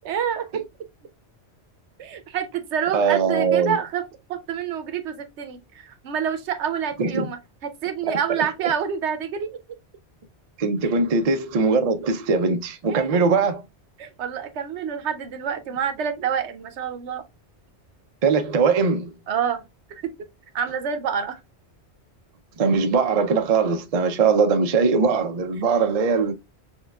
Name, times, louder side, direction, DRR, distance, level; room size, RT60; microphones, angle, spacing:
voice 1, 0.0-0.6 2.0-4.0 4.3-9.6 10.8-11.0 12.9-13.2 14.0-17.2 19.3-19.6 20.0-20.3 20.5-21.4, right 8 dB, 80° right, 1.0 m, -28 dB
voice 2, 2.9-3.8 7.0-7.3 10.6-13.6 18.2-19.1 22.6-26.3, right 5 dB, 45° right, 0.5 m, -21 dB
6.2 x 2.4 x 2.2 m
omnidirectional pair, 1.1 m